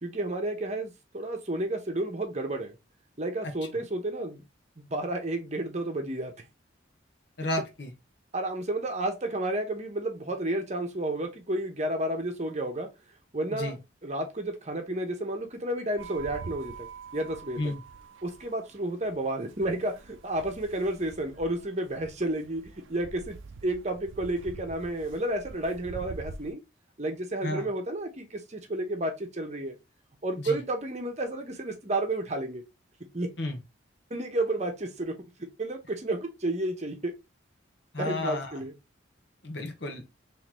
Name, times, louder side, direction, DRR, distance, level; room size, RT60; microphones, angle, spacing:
voice 1, 0.0-2.8 3.2-4.4 4.9-6.3 8.3-12.9 13.3-13.7 14.0-16.9 17.1-17.7 18.2-22.6 22.9-23.4 23.6-26.6 27.0-29.8 30.2-32.6 33.1-33.3 34.1-37.1 38.0-38.7, right 1 dB, 35° right, 0.9 m, -31 dB
voice 2, 7.4-7.9 13.5-13.8 17.6-17.8 27.4-27.7 30.4-30.6 33.4-33.6 37.9-38.6 39.4-40.0, left 1 dB, 60° left, 1.2 m, -32 dB
sound 1, 16.0-26.5, right 4 dB, 80° right, 0.5 m, -46 dB
3.8 x 3.2 x 3.0 m
head